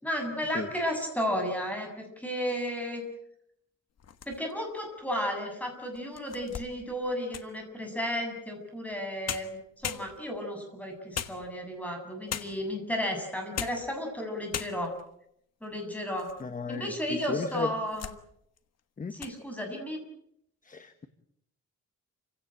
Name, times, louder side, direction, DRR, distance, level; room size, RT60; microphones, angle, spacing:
voice 1, 0.0-3.0 4.3-14.9 15.6-16.3 16.7-18.1 19.1-20.0, equal, 5° left, 7.4 m, -33 dB
sound 1, 4.0-4.7 5.3-5.4 5.9-7.6 8.9-9.0 9.3-10.5 11.1-11.8 12.3-12.8 13.4-13.9 14.2-14.3 14.5-15.1 15.6-16.4 16.7-16.8 17.5-18.2 18.6-18.8 19.1-19.4, left 8 dB, 55° left, 1.5 m, -39 dB
voice 2, 16.4-17.7 19.0-19.2 20.6-21.1, left 4 dB, 25° left, 1.3 m, -34 dB
29.0 x 17.0 x 9.0 m
wide cardioid pair, 145°, 31 cm